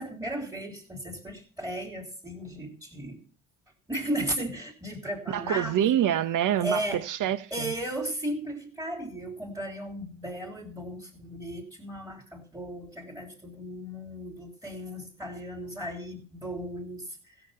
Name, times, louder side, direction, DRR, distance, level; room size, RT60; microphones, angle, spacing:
voice 1, 0.0-3.2 3.9-5.7 6.6-7.0 7.5-17.2, right 1 dB, 5° right, 3.8 m, -35 dB
voice 2, 5.3-7.7, right 11 dB, 60° right, 1.1 m, -26 dB
15.5 x 7.1 x 5.7 m
supercardioid pair, 70°, 35 cm